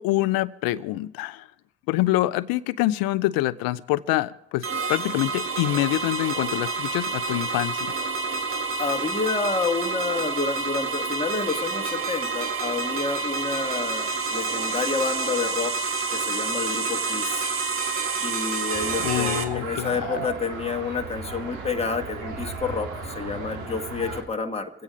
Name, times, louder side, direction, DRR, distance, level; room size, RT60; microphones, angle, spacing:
voice 1, 0.0-1.4 1.9-7.9 19.0-20.3, left 16 dB, 75° left, 17 dB, 0.7 m, -26 dB
sound 1, 4.6-19.4, right 4 dB, 35° right, 1.7 m, -28 dB
voice 2, 8.8-17.5 18.2-24.7, left 4 dB, 15° left, 4 dB, 1.6 m, -29 dB
sound 2, 18.7-24.2, right 3 dB, 85° right, 2.9 m, -35 dB
25.5 x 8.6 x 5.1 m, 0.82 s
supercardioid pair, 70°, 35 cm